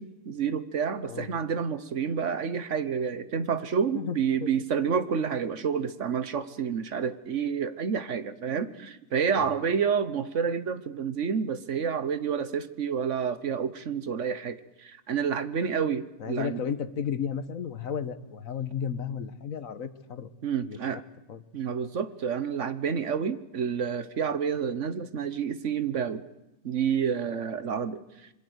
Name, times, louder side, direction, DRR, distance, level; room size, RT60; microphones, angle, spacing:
voice 1, 0.0-16.6 20.4-21.0 21.5-26.2 26.6-28.0, right 7 dB, 60° right, 13 dB, 1.4 m, -29 dB
voice 2, 3.9-4.5 9.4-9.5 16.2-20.3 20.6-21.0 21.3-21.4, left 7 dB, 70° left, 13 dB, 1.7 m, -33 dB
26.0 x 22.5 x 8.1 m, 0.96 s
omnidirectional pair, 1.5 m